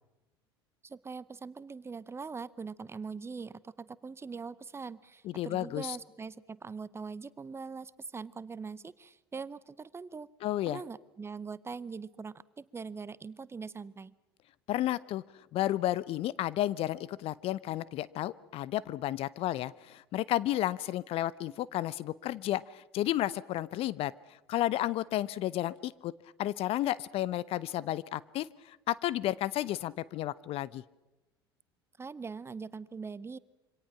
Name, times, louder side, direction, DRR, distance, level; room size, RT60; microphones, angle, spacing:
voice 1, 0.8-10.3 10.7-14.1 32.0-33.4, right 5 dB, 20° right, 19 dB, 0.8 m, -42 dB
voice 2, 5.2-6.0 10.4-10.8 14.7-15.2 15.5-24.1 24.5-26.1 26.4-30.8, left 14 dB, 45° left, 20 dB, 0.7 m, -32 dB
27.0 x 25.0 x 5.9 m, 1.0 s
figure-of-eight pair, 70°, 13 cm